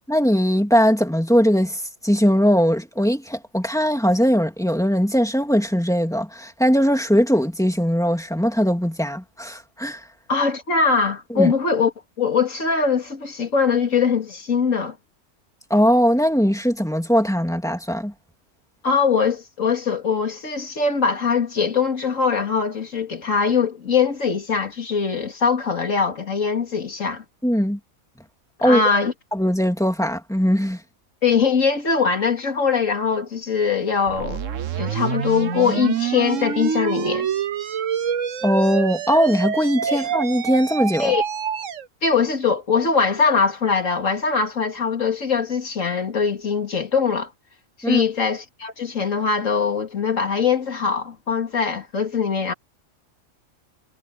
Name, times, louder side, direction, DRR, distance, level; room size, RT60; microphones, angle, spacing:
voice 1, 0.1-10.0 11.3-11.5 15.7-18.1 27.4-27.8 28.6-28.8 29.3-30.8 38.4-41.1 47.8-48.0, equal, ahead, 2.3 m, -20 dB
voice 2, 10.3-11.9 12.2-15.0 18.8-27.2 28.6-29.1 31.2-34.4 34.8-37.3 39.9-40.0 41.0-41.2 42.0-47.3 47.8-52.5, left 5 dB, 80° left, 2.8 m, -22 dB
sound 1, 34.1-41.9, right 8 dB, 75° right, 1.4 m, -26 dB
omnidirectional pair, 1.3 m